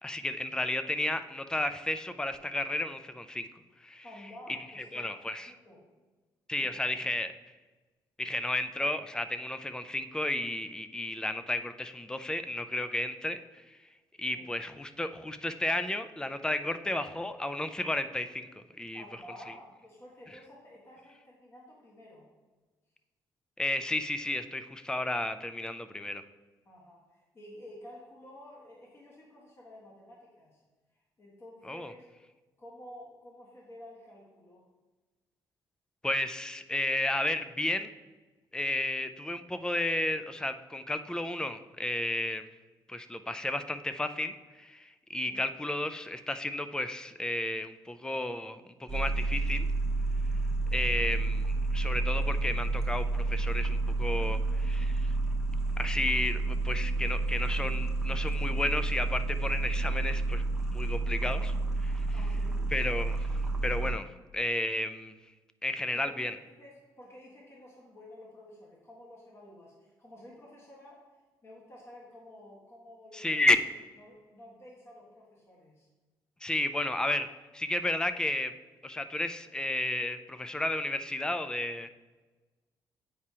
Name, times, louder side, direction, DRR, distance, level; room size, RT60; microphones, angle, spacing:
voice 1, 0.0-3.5 3.8-4.0 4.5-5.5 6.5-7.3 8.2-13.8 14.2-18.5 18.8-19.0 23.6-26.2 31.7-31.9 36.0-37.9 38.5-42.4 42.9-49.7 50.7-55.1 55.8-60.4 60.7-61.5 61.8-62.1 62.7-63.3 63.6-65.1 65.6-66.4 73.1-73.6 76.4-77.3 77.5-78.5 78.8-81.9, left 1 dB, 10° left, 10 dB, 0.4 m, -32 dB
voice 2, 4.0-5.9 6.6-6.9 14.3-14.5 18.9-22.3 26.6-30.6 31.2-32.1 32.6-34.6 45.2-45.4 62.1-62.7 65.9-71.0 71.4-73.5 74.0-75.9, left 1 dB, 35° left, -4 dB, 1.5 m, -51 dB
sound 1, 48.9-63.9, right 3 dB, 5° right, 1.0 m, -30 dB
8.6 x 4.7 x 2.8 m, 1.2 s
cardioid pair, 105°, 8 cm